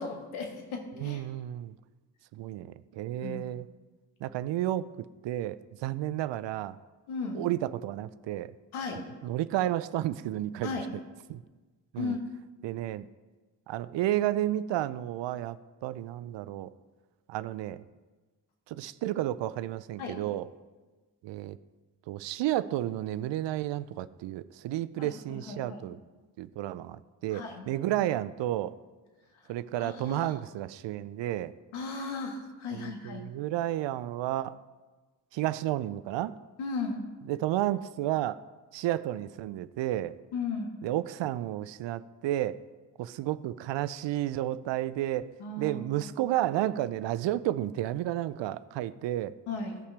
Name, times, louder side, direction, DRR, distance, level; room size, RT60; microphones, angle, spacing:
voice 1, 0.0-1.2 3.2-3.5 7.1-7.4 8.7-9.0 10.6-10.9 12.0-12.3 20.0-20.2 25.0-25.8 27.3-27.7 29.8-30.3 31.7-33.2 36.6-37.0 40.3-40.7 45.4-46.1 49.5-49.8, left 3 dB, 70° left, 2 dB, 1.6 m, -36 dB
voice 2, 1.0-1.7 2.3-3.7 4.2-6.8 7.3-8.5 9.2-10.7 11.3-11.4 11.9-12.2 12.6-13.1 13.7-15.6 15.8-16.7 17.3-17.8 18.7-20.5 21.2-21.6 22.1-26.0 26.4-28.7 29.5-31.5 32.7-34.6 35.3-36.4 37.3-38.4 38.7-40.2 40.8-42.6 43.0-45.3 45.6-49.3, right 13 dB, 60° right, 15 dB, 0.5 m, -31 dB
15.5 x 5.6 x 3.4 m, 1.3 s
hypercardioid pair, 40°, 50 cm